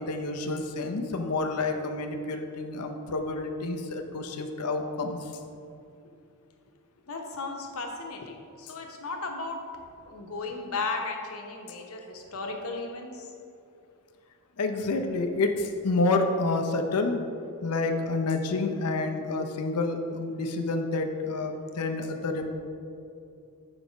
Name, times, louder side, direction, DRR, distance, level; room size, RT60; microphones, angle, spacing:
voice 1, 0.0-5.2 14.6-17.2 17.6-22.6, left 3 dB, 85° left, 5 dB, 0.7 m, -29 dB
voice 2, 7.1-9.6 10.1-13.3, left 3 dB, 65° left, 2 dB, 1.0 m, -35 dB
7.1 x 4.9 x 5.2 m, 2.5 s
head